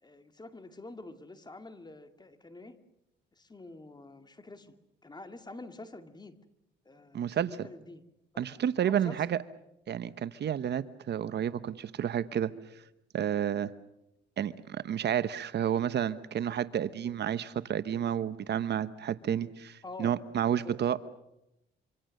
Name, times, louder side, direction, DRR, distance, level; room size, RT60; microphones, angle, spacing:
voice 1, 0.0-2.8 3.4-4.8 5.0-6.4 6.9-8.0 8.3-9.2 19.8-20.2 20.4-21.0, left 2 dB, 20° left, 9 dB, 2.2 m, -47 dB
voice 2, 7.1-7.5 8.4-9.4 9.9-12.5 13.1-13.7 14.4-21.0, right 9 dB, 60° right, 15 dB, 1.0 m, -30 dB
26.0 x 25.5 x 6.6 m, 0.86 s
cardioid pair, 90°, 20 cm